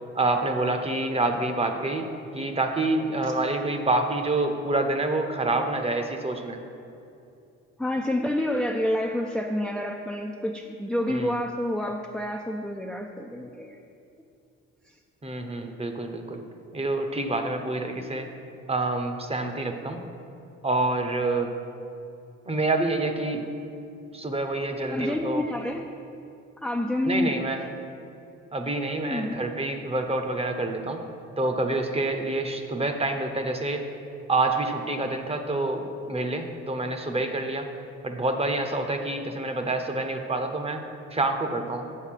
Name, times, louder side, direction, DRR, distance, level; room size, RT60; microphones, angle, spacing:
voice 1, 0.1-6.6 11.1-11.3 15.2-16.4 16.7-18.3 18.7-20.0 20.6-21.5 22.5-23.5 24.1-25.4 27.0-27.6 28.5-31.0 31.4-33.8 34.3-37.7 38.0-40.8 41.1-41.8, right 2 dB, 20° right, 6 dB, 0.8 m, -27 dB
voice 2, 7.8-13.8 24.9-25.8 26.6-27.3 27.6-27.7 29.0-29.4, left 1 dB, ahead, 1 dB, 0.4 m, -28 dB
7.3 x 6.5 x 5.8 m, 2.7 s
cardioid pair, 90°, 30 cm